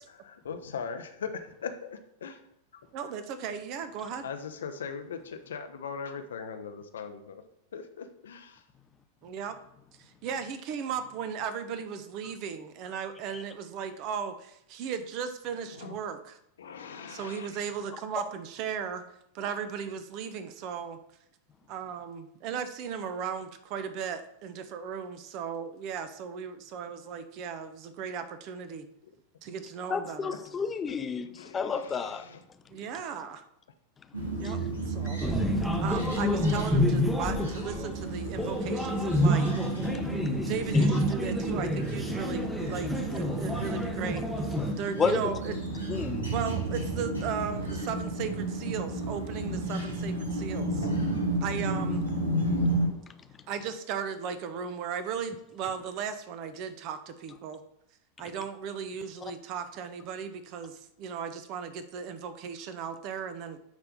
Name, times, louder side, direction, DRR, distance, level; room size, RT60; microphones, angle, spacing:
voice 1, 0.3-2.4 4.2-7.4 7.7-8.6 15.7-16.0 16.6-17.6 30.3-30.4 31.2-32.4 50.8-51.4, left 6 dB, 65° left, 8 dB, 0.7 m, -40 dB
voice 2, 2.9-4.3 9.2-9.6 10.0-16.4 17.1-19.0 19.3-21.0 21.7-28.9 29.4-30.4 32.7-33.4 34.4-35.2 35.8-39.5 40.5-44.3 44.7-45.6 46.3-50.9 51.4-52.0 53.5-57.6 58.2-63.6, right 7 dB, 40° right, 10 dB, 0.7 m, -36 dB
voice 3, 29.9-31.3 31.5-32.2 34.4-34.5 40.7-40.9 41.2-41.3 45.0-45.2 45.9-46.3, left 6 dB, 20° left, 9 dB, 0.6 m, -30 dB
sound 1, 34.1-52.9, right 2 dB, 75° right, 1.9 m, -32 dB
sound 2, 35.2-44.7, left 1 dB, 5° right, 0.9 m, -28 dB
9.2 x 3.4 x 5.3 m, 0.76 s
figure-of-eight pair, 90°, 0 cm